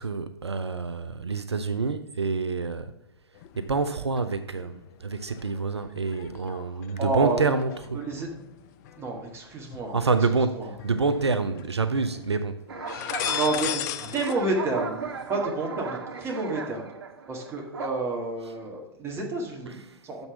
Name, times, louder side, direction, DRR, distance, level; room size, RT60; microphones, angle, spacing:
voice 1, 0.0-2.9 3.6-8.0 9.9-12.6 19.9-20.0, right 4 dB, 80° right, 0.5 m, -27 dB
sound 1, 3.3-4.2 4.6-10.2 10.8-11.7 12.0-12.3 12.7-14.4 14.6-15.3, left 10 dB, 40° left, 0.5 m, -37 dB
voice 2, 6.7-7.5 7.9-8.3 9.0-10.0 10.5-10.7 13.3-16.9 17.3-20.3, right 2 dB, 20° right, 1.9 m, -30 dB
sound 2, 12.7-17.9, right 5 dB, 65° right, 0.9 m, -36 dB
7.0 x 5.3 x 6.0 m
figure-of-eight pair, 105°, 14 cm